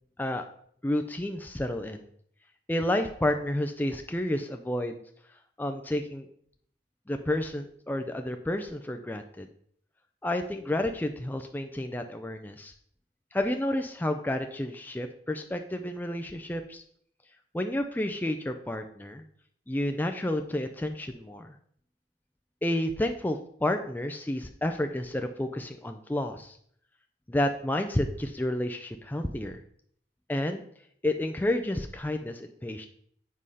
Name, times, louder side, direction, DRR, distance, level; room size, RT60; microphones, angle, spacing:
voice 1, 0.8-2.1 2.7-5.0 5.6-6.3 7.1-9.5 10.2-12.7 13.3-16.8 17.5-19.2 19.7-21.5 22.6-26.6 27.3-29.6 30.3-30.6 31.0-32.9, left 1 dB, 10° left, 5 dB, 0.4 m, -30 dB
7.6 x 4.9 x 5.4 m, 0.63 s
head